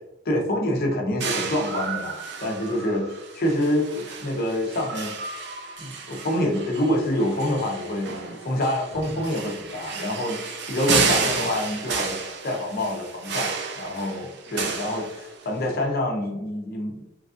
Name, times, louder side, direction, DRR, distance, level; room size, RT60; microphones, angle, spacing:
voice 1, 0.2-5.1 5.8-12.2 12.4-17.1, left 1 dB, 50° left, 1 dB, 0.7 m, -26 dB
sound 1, 1.2-15.7, right 5 dB, 60° right, 0.5 m, -31 dB
3.1 x 2.4 x 2.5 m, 0.97 s
head